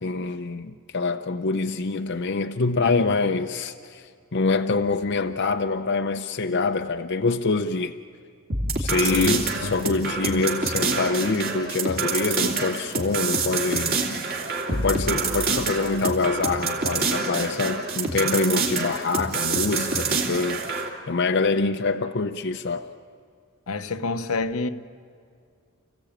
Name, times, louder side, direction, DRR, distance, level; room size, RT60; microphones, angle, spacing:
voice 1, 0.0-7.9 8.8-14.0 14.7-22.9, left 3 dB, 55° left, 0.7 m, -25 dB
sound 1, 8.5-20.9, right 4 dB, 45° right, 2.9 m, -27 dB
voice 2, 9.0-9.7 23.7-24.7, left 3 dB, 80° left, 1.0 m, -27 dB
30.0 x 16.0 x 8.8 m
head